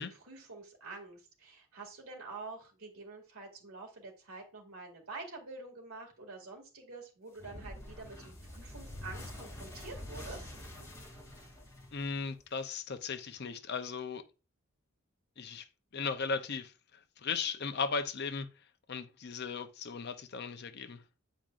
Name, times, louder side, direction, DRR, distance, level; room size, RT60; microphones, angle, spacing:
voice 1, 0.0-10.5, right 3 dB, 85° right, 2.3 m, -47 dB
sound 1, 7.4-12.5, left 1 dB, 15° left, 2.4 m, -46 dB
voice 2, 11.9-14.2 15.4-15.6 15.9-16.7 17.2-18.5 18.9-21.0, left 5 dB, 50° left, 0.6 m, -36 dB
9.0 x 5.0 x 2.5 m
head